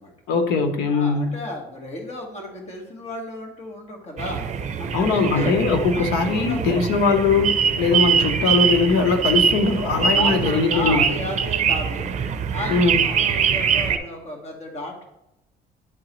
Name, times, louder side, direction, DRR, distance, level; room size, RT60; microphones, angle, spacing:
voice 1, 0.3-1.4 4.9-11.0 12.7-13.1, left 4 dB, 90° left, 6 dB, 0.9 m, -21 dB
voice 2, 0.9-4.5 4.8-6.8 10.2-12.1 12.5-15.0, left 1 dB, 40° left, 1 dB, 1.8 m, -33 dB
sound 1, 4.2-14.0, right 7 dB, 45° right, 0.6 m, -23 dB
10.5 x 3.8 x 3.1 m, 0.88 s
cardioid pair, 110°, 17 cm